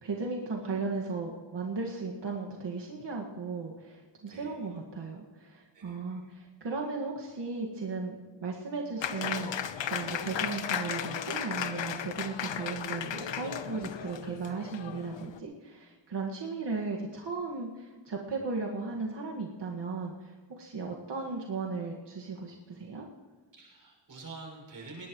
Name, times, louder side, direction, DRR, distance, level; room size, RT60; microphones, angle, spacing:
voice 1, 0.0-23.1, right 4 dB, 70° right, -1 dB, 2.0 m, -36 dB
voice 2, 4.3-4.6 5.7-6.2 23.6-25.1, right 3 dB, 50° right, 0 dB, 6.4 m, -47 dB
Applause, 9.0-15.4, left 8 dB, 80° left, 1.0 m, -35 dB
20.0 x 19.0 x 3.2 m, 1.4 s
wide cardioid pair, 160°, 44 cm